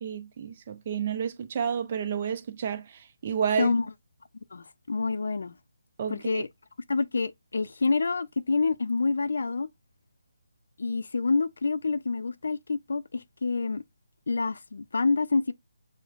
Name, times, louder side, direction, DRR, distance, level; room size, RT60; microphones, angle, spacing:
voice 1, 0.0-3.7 6.0-6.4, right 7 dB, 35° right, 0.6 m, -30 dB
voice 2, 4.5-5.6 6.1-6.5 6.9-9.7 10.8-13.8 14.3-15.5, left 4 dB, 75° left, 0.4 m, -27 dB
6.2 x 2.1 x 2.4 m
hypercardioid pair, 165°, 0 cm